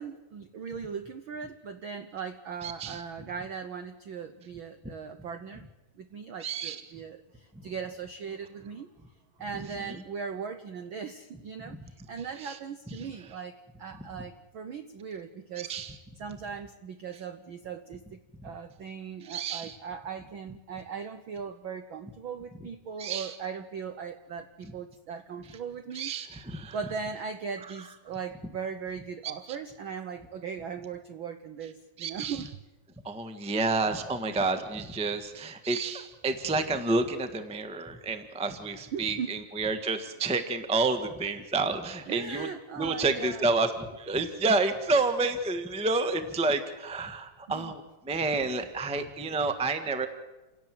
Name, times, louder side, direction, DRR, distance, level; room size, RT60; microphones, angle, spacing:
voice 1, 0.0-5.7 6.0-8.9 9.4-15.7 16.2-26.1 26.7-32.5 38.9-39.4 42.1-43.5 47.5-47.7, right 6 dB, 75° right, 9 dB, 1.2 m, -39 dB
voice 2, 2.6-3.0 6.4-6.8 9.9-10.0 11.6-11.8 12.4-12.6 13.0-13.1 15.6-15.9 19.2-19.8 23.0-23.3 25.9-26.8 32.0-32.4 33.0-42.5 42.8-50.1, right 3 dB, 5° right, 8 dB, 0.5 m, -29 dB
29.0 x 17.5 x 7.7 m, 1.1 s
omnidirectional pair, 3.4 m